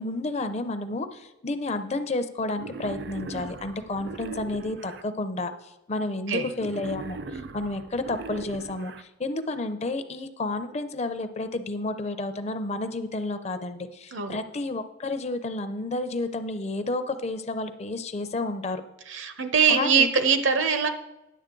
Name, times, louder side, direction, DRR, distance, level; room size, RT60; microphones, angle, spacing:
voice 1, 0.0-5.5 5.9-7.2 7.5-18.8 19.7-20.1, left 2 dB, 35° left, 10 dB, 0.5 m, -31 dB
Wild animals, 2.5-5.0 6.5-9.0, right 3 dB, 55° right, 0.4 m, -39 dB
voice 2, 19.1-20.9, right 6 dB, 75° right, 9 dB, 0.8 m, -22 dB
10.0 x 7.1 x 3.8 m, 0.95 s
head